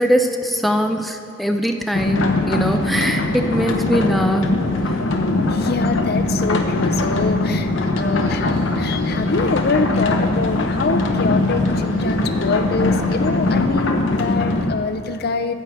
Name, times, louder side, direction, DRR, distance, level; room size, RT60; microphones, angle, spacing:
voice 1, 0.0-4.5 6.9-7.0 7.5-7.6 7.9-8.4, equal, ahead, 5 dB, 0.4 m, -21 dB
sound 1, 1.9-14.7, left 2 dB, 85° left, 0.9 m, -21 dB
Birdsong and wind through trees in Stockwood Park, 2.8-13.6, equal, 85° right, 2.5 m, -35 dB
voice 2, 5.5-15.5, left 4 dB, 55° left, 9 dB, 0.6 m, -25 dB
13.5 x 4.8 x 7.8 m, 2.9 s
head